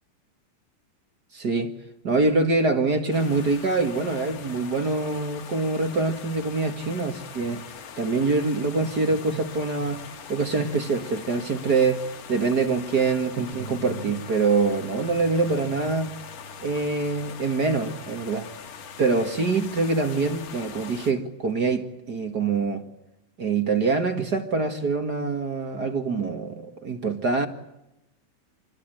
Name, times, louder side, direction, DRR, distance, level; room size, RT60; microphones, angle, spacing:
voice 1, 1.3-1.7 2.0-7.6 8.0-10.0 10.3-16.1 16.6-18.5 19.0-22.8 23.4-27.5, right 3 dB, 35° right, 1.9 m, -25 dB
Small River Flowing Next to Street, 3.1-21.1, left 7 dB, 70° left, 3.4 m, -42 dB
Bass guitar, 13.5-19.8, right 2 dB, 75° right, 7.2 m, -45 dB
28.0 x 22.0 x 9.1 m
omnidirectional pair, 4.0 m